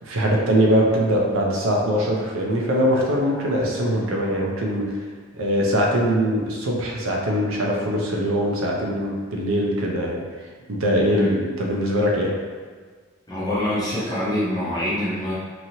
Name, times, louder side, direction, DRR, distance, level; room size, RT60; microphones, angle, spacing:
voice 1, 0.0-4.8 5.3-10.2 10.7-12.3, equal, 85° right, -1 dB, 0.6 m, -22 dB
voice 2, 13.3-15.3, left 1 dB, 20° left, -9 dB, 0.8 m, -25 dB
3.0 x 2.7 x 2.8 m, 1.5 s
head